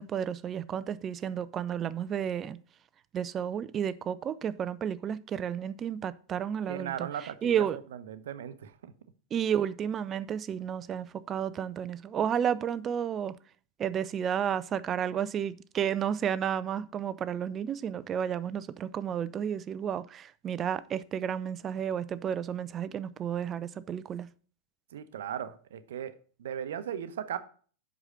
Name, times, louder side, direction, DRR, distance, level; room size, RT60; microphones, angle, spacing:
voice 1, 0.0-2.6 3.1-7.8 9.3-13.4 13.8-24.3, right 8 dB, 25° right, 0.5 m, -32 dB
voice 2, 6.7-7.7 8.1-8.9 24.9-26.1 26.4-27.4, right 9 dB, 60° right, 0.9 m, -37 dB
7.9 x 6.0 x 5.6 m
figure-of-eight pair, 90°, 0 cm